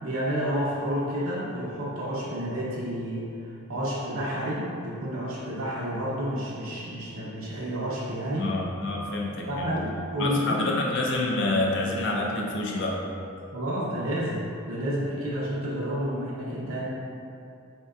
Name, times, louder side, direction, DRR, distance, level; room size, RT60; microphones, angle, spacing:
voice 1, 0.0-8.5 9.5-10.6 13.5-14.4 14.7-16.9, equal, 70° right, -7 dB, 0.7 m, -30 dB
voice 2, 8.3-9.7 10.2-13.0, left 2 dB, 55° left, -2 dB, 0.5 m, -27 dB
4.4 x 2.8 x 2.3 m, 2.6 s
head